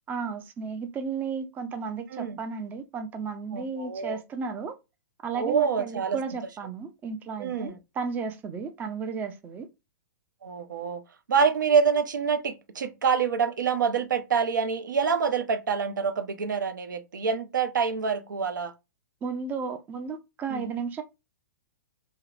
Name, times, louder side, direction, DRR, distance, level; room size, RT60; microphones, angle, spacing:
voice 1, 0.1-4.7 5.2-9.7 19.2-21.0, right 5 dB, 15° right, 0.3 m, -34 dB
voice 2, 3.5-4.2 5.4-6.2 7.4-7.7 10.4-11.0 11.3-18.7 20.5-20.7, right 6 dB, 80° right, 0.5 m, -26 dB
2.8 x 2.0 x 2.4 m
hypercardioid pair, 120°, 10 cm